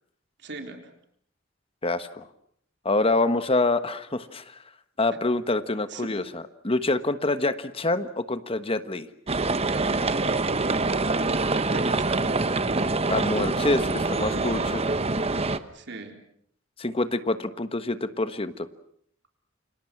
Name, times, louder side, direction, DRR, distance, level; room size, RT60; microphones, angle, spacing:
voice 1, 0.4-0.9 5.1-5.2 5.9-6.1 11.7-12.3 14.0-14.5 15.7-16.2, right 3 dB, 60° right, 4 dB, 3.9 m, -40 dB
voice 2, 1.8-2.3 2.8-4.6 5.0-9.1 13.1-14.8 16.8-18.7, left 2 dB, 30° left, 11 dB, 1.3 m, -26 dB
sound 1, 9.3-15.6, right 3 dB, 30° right, 1.1 m, -25 dB
29.5 x 26.0 x 6.0 m, 0.66 s
head